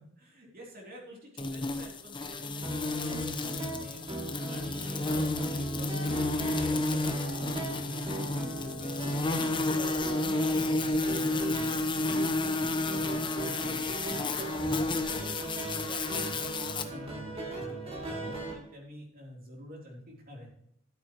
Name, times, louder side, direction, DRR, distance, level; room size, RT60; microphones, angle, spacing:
voice 1, 0.2-9.0 9.4-20.5, equal, 45° right, -1 dB, 3.3 m, -47 dB
sound 1, 1.4-16.8, left 2 dB, 25° left, 0.8 m, -31 dB
sound 2, 2.6-18.5, right 2 dB, 30° right, 2.8 m, -39 dB
14.0 x 8.0 x 3.0 m, 0.74 s
head